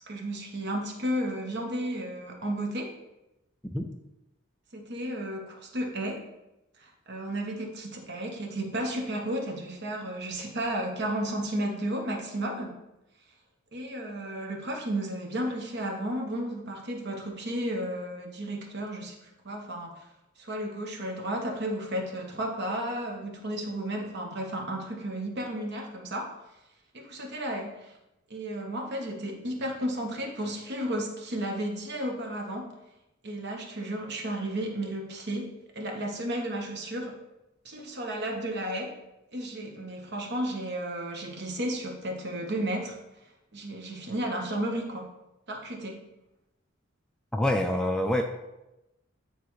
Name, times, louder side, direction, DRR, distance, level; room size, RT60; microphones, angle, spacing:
voice 1, 0.1-2.9 4.7-6.2 7.1-12.8 13.7-19.2 19.4-19.9 20.4-26.3 26.9-27.9 28.3-32.7 33.2-37.1 37.6-38.9 39.3-42.9 43.5-45.1 45.5-46.0, right 1 dB, 55° right, 1 dB, 1.2 m, -33 dB
voice 2, 47.3-48.2, left 1 dB, 5° left, 3 dB, 0.4 m, -26 dB
9.3 x 4.0 x 3.2 m, 0.93 s
head